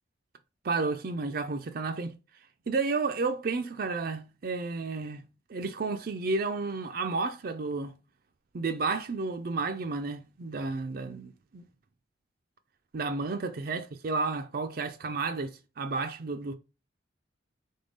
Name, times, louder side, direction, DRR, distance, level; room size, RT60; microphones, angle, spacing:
voice 1, 0.6-2.2 2.7-5.2 5.5-7.9 8.5-11.7 12.9-16.5, right 3 dB, 50° right, 0.5 m, -32 dB
3.6 x 3.6 x 3.9 m
head